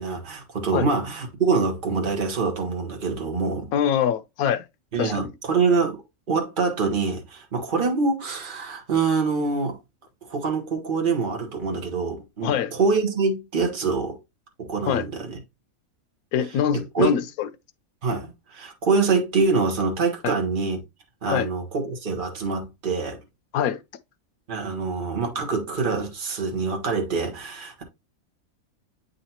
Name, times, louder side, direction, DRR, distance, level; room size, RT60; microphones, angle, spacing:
voice 1, 0.0-3.7 4.9-6.0 6.3-9.8 10.3-14.2 14.6-15.4 16.9-17.1 18.0-20.8 21.2-23.2 24.5-27.8, right 4 dB, 40° right, 1.4 m, -25 dB
voice 2, 3.7-4.6 5.0-5.3 12.4-12.7 14.9-15.1 16.3-17.5 21.3-21.5 23.5-23.8, left 8 dB, 90° left, 1.1 m, -24 dB
8.4 x 4.0 x 2.8 m
omnidirectional pair, 1.5 m